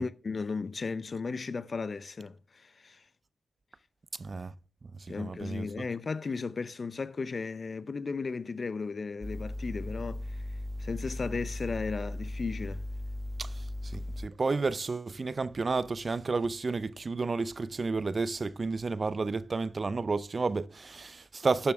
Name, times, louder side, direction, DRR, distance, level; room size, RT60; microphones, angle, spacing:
voice 1, 0.0-3.0 5.1-10.4 10.8-12.8, left 4 dB, 45° left, 0.6 m, -35 dB
voice 2, 4.2-4.5 5.0-5.8 13.4-21.7, right 4 dB, 40° right, 0.6 m, -31 dB
sound 1, 9.2-14.3, left 1 dB, 20° left, 1.1 m, -37 dB
12.0 x 7.0 x 3.4 m
supercardioid pair, 50°, 0 cm